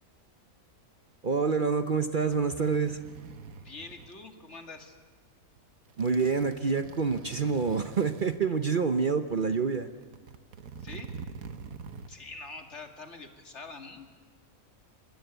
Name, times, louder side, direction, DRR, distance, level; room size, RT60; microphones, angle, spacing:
voice 1, 1.2-3.0 6.0-9.9, right 5 dB, 40° right, 9 dB, 0.9 m, -27 dB
sound 1, 1.7-4.1 5.4-5.6 5.9-8.4 9.0-9.1 9.9-12.2 12.4-12.5, right 5 dB, 90° right, 1.6 m, -45 dB
voice 2, 3.6-4.9 10.8-11.1 12.1-14.1, left 3 dB, 55° left, 5 dB, 2.6 m, -44 dB
26.0 x 21.0 x 8.1 m, 1.5 s
omnidirectional pair, 1.4 m